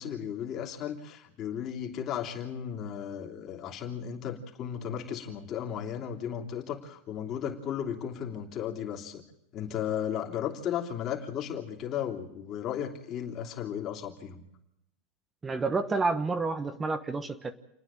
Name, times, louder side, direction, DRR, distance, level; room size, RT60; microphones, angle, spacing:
voice 1, 0.0-9.2 9.5-14.4, left 9 dB, 45° left, 1 dB, 3.2 m, -35 dB
voice 2, 15.4-17.5, right 3 dB, 20° right, 9 dB, 1.2 m, -29 dB
29.0 x 9.9 x 8.9 m, 0.83 s
hypercardioid pair, 105°, 0 cm